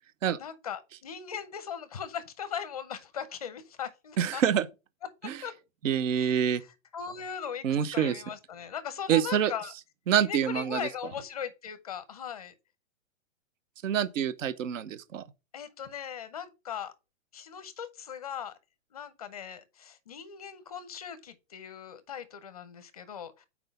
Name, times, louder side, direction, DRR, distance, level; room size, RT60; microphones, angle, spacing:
voice 1, 0.4-4.4 5.4-5.5 6.1-6.7 6.9-7.7 7.9-9.7 10.2-12.5 15.5-16.9 17.3-18.6 18.9-23.5, left 8 dB, 30° left, 0.5 m, -39 dB
voice 2, 4.2-4.7 5.2-5.4 5.8-6.6 7.6-8.2 9.1-9.5 10.1-10.9 13.8-15.2, right 9 dB, 70° right, 0.7 m, -26 dB
5.9 x 4.6 x 5.1 m
hypercardioid pair, 175°, 40 cm